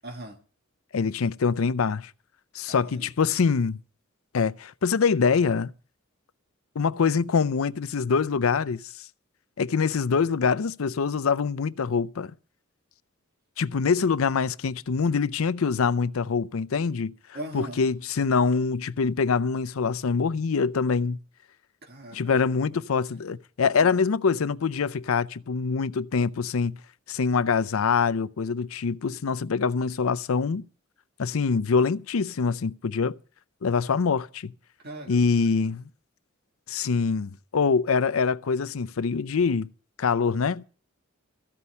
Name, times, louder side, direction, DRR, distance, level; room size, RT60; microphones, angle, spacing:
voice 1, 0.0-0.4 2.7-3.1 17.3-17.8 21.8-22.8 23.8-23.9 34.8-35.4, right 1 dB, 50° right, 1.7 m, -40 dB
voice 2, 0.9-2.1 2.5-3.8 4.3-5.7 6.8-9.1 9.6-12.3 13.6-17.1 17.5-21.2 22.1-26.8 27.1-30.6 31.2-33.2 33.6-34.5 35.1-35.9 36.7-39.7 40.0-40.6, left 5 dB, 85° left, 0.5 m, -24 dB
14.5 x 5.6 x 9.5 m
head